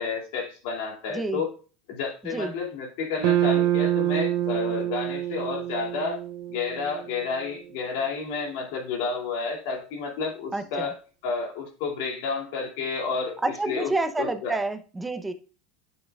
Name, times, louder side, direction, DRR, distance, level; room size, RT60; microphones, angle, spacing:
voice 1, 0.0-1.5 1.9-6.2 6.5-10.9 11.2-13.4 13.7-13.9 14.2-14.6, left 5 dB, 75° left, 1 dB, 2.6 m, -30 dB
voice 2, 1.1-1.4 2.2-2.5 10.5-10.9 13.4-15.3, right 2 dB, 10° right, 9 dB, 0.7 m, -29 dB
sound 1, 3.2-7.6, right 12 dB, 65° right, 0.7 m, -26 dB
10.5 x 6.4 x 2.4 m, 0.37 s
supercardioid pair, 130°, 0 cm